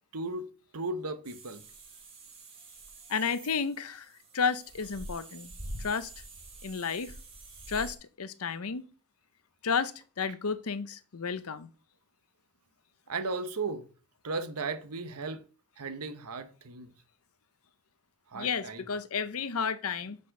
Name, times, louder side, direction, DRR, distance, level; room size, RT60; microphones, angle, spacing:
voice 1, 0.1-0.5 0.7-1.6 13.1-13.9 14.2-15.4 15.8-16.9 18.3-18.8, right 3 dB, 85° right, 1.0 m, -35 dB
sound 1, 1.2-7.9, right 1 dB, 25° right, 2.1 m, -46 dB
voice 2, 3.1-4.1 4.3-5.5 5.8-6.1 6.6-7.1 7.7-8.9 9.6-11.7 18.3-20.2, left 5 dB, 75° left, 0.7 m, -32 dB
6.0 x 5.3 x 6.5 m
head